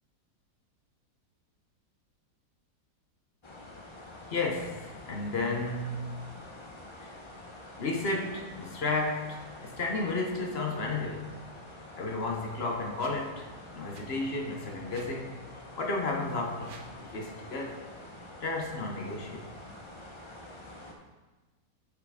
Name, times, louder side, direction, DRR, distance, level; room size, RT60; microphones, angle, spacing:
sound 1, 3.4-20.9, left 1 dB, 30° left, 0.5 m, -47 dB
voice 1, 4.3-6.2 7.0-7.2 7.8-11.4 12.0-13.5 13.7-15.3 15.8-16.8 17.1-17.8 18.4-19.6, left 3 dB, 45° left, 1 dB, 1.0 m, -33 dB
sound 2, 12.9-13.2 13.9-14.1 14.9-15.2 16.5-17.1, right 4 dB, 60° right, 0.5 m, -51 dB
6.7 x 5.6 x 5.0 m, 1.2 s
omnidirectional pair, 1.8 m